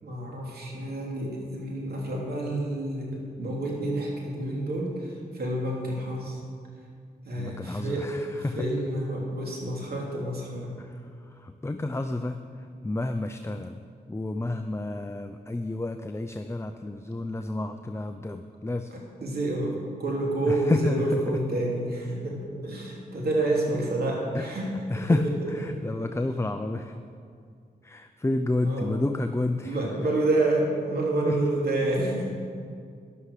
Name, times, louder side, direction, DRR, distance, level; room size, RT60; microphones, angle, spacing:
voice 1, 0.0-6.4 7.2-8.1 8.6-10.7 19.2-24.7 24.9-25.2 25.6-26.0 28.6-28.9 29.6-32.3, right 2 dB, 75° right, -2 dB, 3.2 m, -29 dB
voice 2, 7.4-8.7 10.8-13.8 14.1-18.9 20.5-21.4 24.3-27.0 27.8-30.1 31.2-31.5 31.8-31.9, left 2 dB, 15° left, 7 dB, 0.6 m, -30 dB
12.5 x 11.5 x 6.7 m, 2.2 s
cardioid pair, 75°, 16 cm